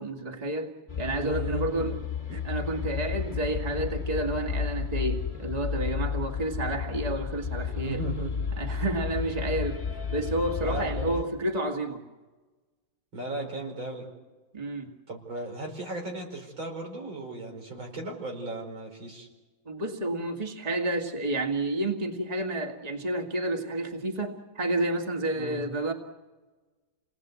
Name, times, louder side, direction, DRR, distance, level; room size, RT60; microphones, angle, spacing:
voice 1, 0.0-2.0 2.4-8.0 8.6-9.8 10.1-12.0 14.5-14.9 19.7-25.9, right 1 dB, 20° right, 2 dB, 2.2 m, -30 dB
sound 1, 0.9-11.2, left 6 dB, 25° left, 2.1 m, -32 dB
voice 2, 1.2-1.9 2.3-2.4 7.8-8.3 10.6-11.2 13.1-14.1 15.1-19.3 25.3-25.6, right 2 dB, 85° right, 1 dB, 5.7 m, -36 dB
29.5 x 19.5 x 8.3 m, 1.2 s
omnidirectional pair, 2.1 m